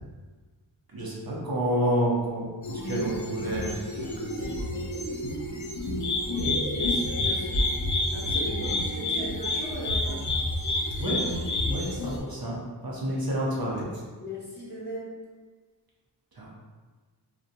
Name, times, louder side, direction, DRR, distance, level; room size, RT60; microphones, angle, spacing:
voice 1, 0.9-4.5 11.0-11.2 11.7-13.9 16.4-16.5, equal, 55° right, -4 dB, 0.6 m, -29 dB
sound 1, 2.6-12.2, left 1 dB, 45° left, 0.5 m, -29 dB
voice 2, 6.3-10.2 14.2-15.2, equal, 25° left, -9 dB, 1.0 m, -37 dB
2.6 x 2.1 x 2.5 m, 1.4 s
wide cardioid pair, 50°, 43 cm